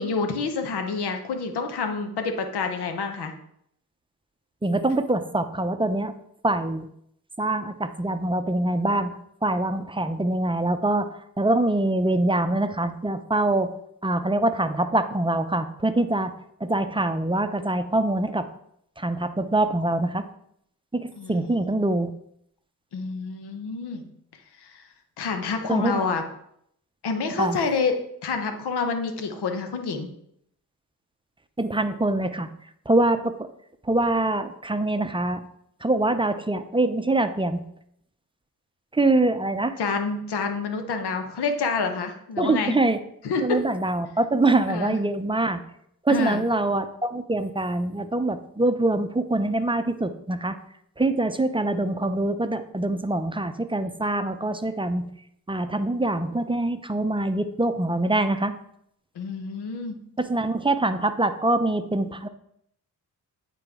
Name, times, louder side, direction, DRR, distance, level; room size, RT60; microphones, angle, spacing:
voice 1, 0.0-3.3 21.2-21.6 22.9-24.1 24.6-24.8 25.2-26.2 27.0-30.1 39.8-42.7 43.2-43.6 44.7-45.0 46.1-46.4 59.2-60.0, left 4 dB, 90° left, 6 dB, 1.0 m, -28 dB
voice 2, 4.6-6.1 6.4-6.9 7.4-9.2 9.4-13.7 14.0-16.3 16.6-18.5 19.0-20.2 20.9-22.1 25.7-26.1 27.4-27.6 31.6-32.5 32.9-33.5 33.9-35.4 35.8-37.6 38.9-39.8 42.4-43.0 43.4-45.6 46.0-50.6 51.0-55.1 55.5-58.5 60.2-62.3, right 2 dB, 15° right, 9 dB, 0.6 m, -24 dB
8.6 x 4.1 x 3.6 m, 0.72 s
cardioid pair, 60°, 38 cm